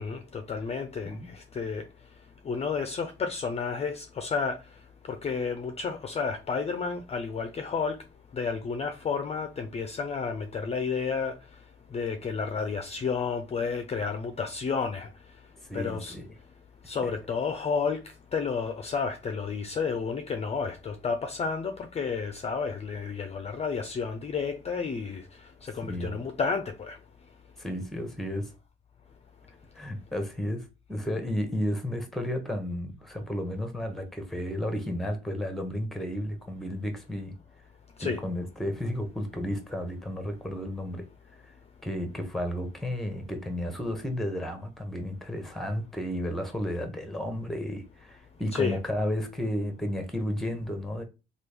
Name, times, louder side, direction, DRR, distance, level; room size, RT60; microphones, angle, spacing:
voice 1, 0.0-1.8 2.4-4.6 5.1-8.0 8.3-11.3 11.9-15.1 15.7-16.2 16.9-18.0 18.3-25.2 25.6-27.0 38.0-38.2 48.5-48.8, left 5 dB, 30° left, 0.4 m, -31 dB
voice 2, 15.7-16.3 17.0-17.1 25.8-26.2 27.6-28.5 29.7-37.4 38.0-41.1 41.4-41.5 41.8-51.0, equal, ahead, 0.9 m, -32 dB
3.0 x 2.4 x 3.4 m
cardioid pair, 90°, 20 cm